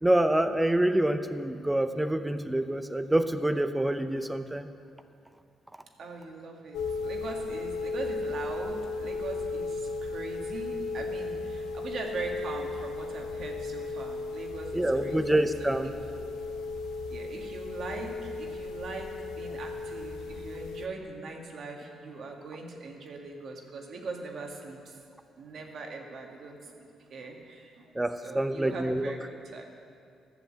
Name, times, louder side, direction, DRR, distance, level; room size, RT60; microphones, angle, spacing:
voice 1, 0.0-4.7 14.7-15.9 27.9-29.1, right 1 dB, 10° right, 10 dB, 0.6 m, -26 dB
voice 2, 6.0-16.0 17.1-25.0 25.4-27.8 28.2-29.6, right 3 dB, 60° right, 2 dB, 1.6 m, -41 dB
sound 1, 6.7-20.9, left 3 dB, 80° left, 0.7 m, -35 dB
12.0 x 7.1 x 7.5 m, 2.4 s
cardioid pair, 90°, 0 cm